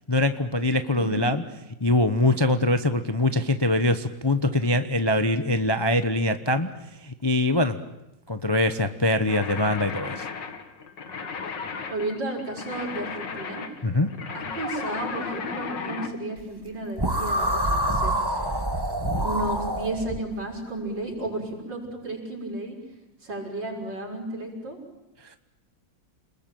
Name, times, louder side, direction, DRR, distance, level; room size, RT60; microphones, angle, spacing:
voice 1, 0.1-1.4 1.8-6.7 7.0-7.8 8.3-10.3 13.8-14.1, left 1 dB, 20° left, 9 dB, 0.7 m, -23 dB
voice 2, 0.9-1.3 11.9-13.7 14.3-18.2 19.1-22.8 23.2-24.8, right 2 dB, 70° right, 0 dB, 7.0 m, -33 dB
sound 1, 9.3-16.1, left 5 dB, 70° left, 2.7 m, -35 dB
sound 2, 17.0-20.2, right 1 dB, 10° right, 2.1 m, -26 dB
29.5 x 21.0 x 9.2 m, 0.93 s
omnidirectional pair, 2.0 m